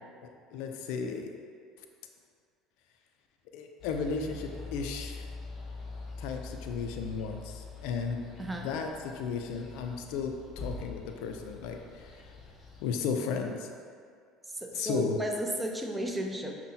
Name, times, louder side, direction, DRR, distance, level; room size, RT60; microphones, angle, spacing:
voice 1, 0.5-1.3 3.5-5.2 6.2-8.2 8.6-12.1 12.8-13.7 14.7-15.2, left 5 dB, 70° left, 4 dB, 0.3 m, -34 dB
sound 1, 3.8-13.0, left 3 dB, 35° left, 0.7 m, -44 dB
voice 2, 8.4-8.7 14.5-16.6, right 1 dB, 15° right, 1 dB, 0.5 m, -33 dB
5.3 x 2.1 x 2.7 m, 2.2 s
hypercardioid pair, 80°, 0 cm